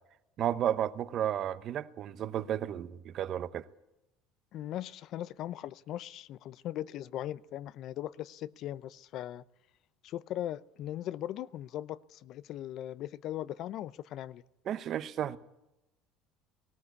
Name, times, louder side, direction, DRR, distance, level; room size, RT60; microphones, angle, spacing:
voice 1, 0.4-3.6 14.7-15.4, right 10 dB, 45° right, 0.9 m, -32 dB
voice 2, 4.5-9.4 10.0-14.4, left 12 dB, 55° left, 0.6 m, -39 dB
18.5 x 17.5 x 8.3 m
cardioid pair, 125°, 0 cm